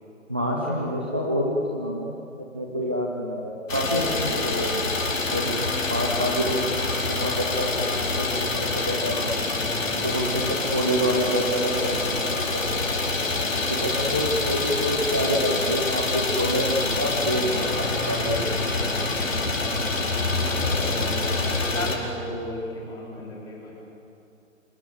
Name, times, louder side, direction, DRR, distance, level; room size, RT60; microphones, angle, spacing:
voice 1, 0.3-4.8 5.3-6.6 6.9-9.3 10.0-12.8 13.7-18.9, equal, 10° right, -2 dB, 0.5 m, -27 dB
Idling, 3.7-22.0, left 3 dB, 75° left, 4.7 m, -26 dB
voice 2, 20.4-23.7, left 1 dB, 10° left, -4 dB, 4.1 m, -36 dB
26.0 x 22.5 x 7.8 m, 2.7 s
figure-of-eight pair, 155°, 40 cm